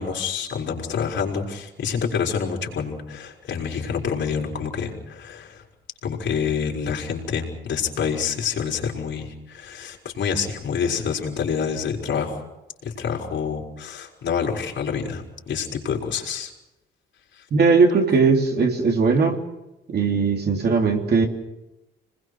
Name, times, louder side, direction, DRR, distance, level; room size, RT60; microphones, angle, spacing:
voice 1, 0.0-5.6 6.0-12.4 12.8-16.5 17.4-17.5, left 6 dB, 65° left, 0 dB, 5.0 m, -27 dB
voice 2, 17.5-19.4 19.9-21.3, right 4 dB, 55° right, 2 dB, 3.5 m, -19 dB
26.5 x 20.5 x 6.3 m, 0.97 s
cardioid pair, 90°, 20 cm